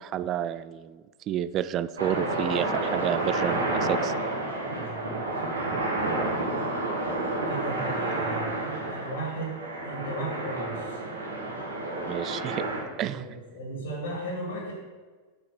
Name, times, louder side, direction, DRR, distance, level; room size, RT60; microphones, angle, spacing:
voice 1, 0.0-4.1 12.1-12.7 13.0-13.2, right 10 dB, 35° right, 15 dB, 0.3 m, -30 dB
sound 1, 2.0-12.8, right 2 dB, 75° right, 1.9 m, -30 dB
voice 2, 4.7-5.2 7.4-11.0 13.0-13.2 13.5-14.7, right 1 dB, 60° left, -2 dB, 2.4 m, -36 dB
5.8 x 5.7 x 6.1 m, 1.4 s
figure-of-eight pair, 90°, 0 cm